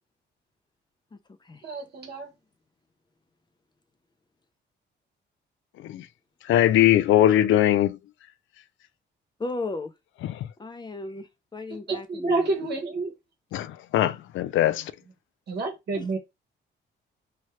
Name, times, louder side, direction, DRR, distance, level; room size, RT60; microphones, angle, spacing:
voice 1, 1.1-1.7 9.4-9.9 10.6-12.7 15.9-16.2, left 2 dB, 20° left, 0.6 m, -36 dB
voice 2, 1.6-2.3 11.9-13.1 15.5-16.2, right 3 dB, 55° right, 1.0 m, -29 dB
voice 3, 6.5-8.0 10.2-10.5 13.5-14.9, left 12 dB, 75° left, 0.4 m, -21 dB
2.9 x 2.3 x 3.1 m
cardioid pair, 90°, 20 cm